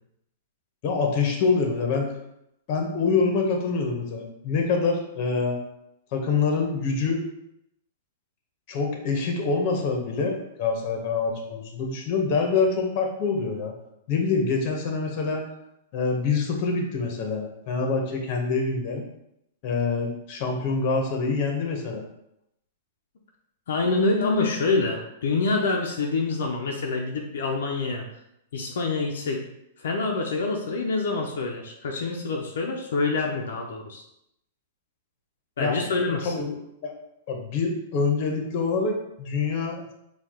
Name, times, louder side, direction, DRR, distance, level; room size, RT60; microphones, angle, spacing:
voice 1, 0.8-2.1 2.7-5.6 6.1-7.2 8.7-13.7 14.1-15.4 15.9-19.0 19.6-22.0 35.6-35.8 36.2-36.6 36.8-36.9 37.3-39.9, left 4 dB, 45° left, 2 dB, 1.0 m, -25 dB
voice 2, 23.7-28.0 28.5-29.4 29.8-34.0 35.6-36.3, left 3 dB, 80° left, 0 dB, 0.6 m, -26 dB
4.5 x 2.4 x 3.7 m, 0.79 s
hypercardioid pair, 140°, 0 cm